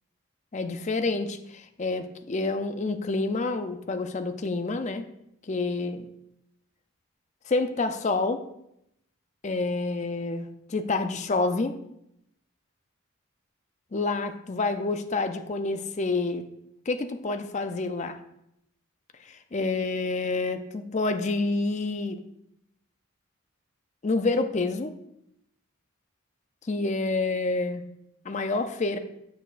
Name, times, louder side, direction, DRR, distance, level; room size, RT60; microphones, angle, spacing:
voice 1, 0.5-5.1 5.5-6.0 7.5-8.4 9.4-11.7 13.9-16.5 16.9-18.2 19.3-22.2 24.0-24.9 26.7-27.8 28.3-29.0, left 3 dB, 35° left, 8 dB, 0.4 m, -28 dB
7.9 x 6.6 x 2.5 m, 0.79 s
head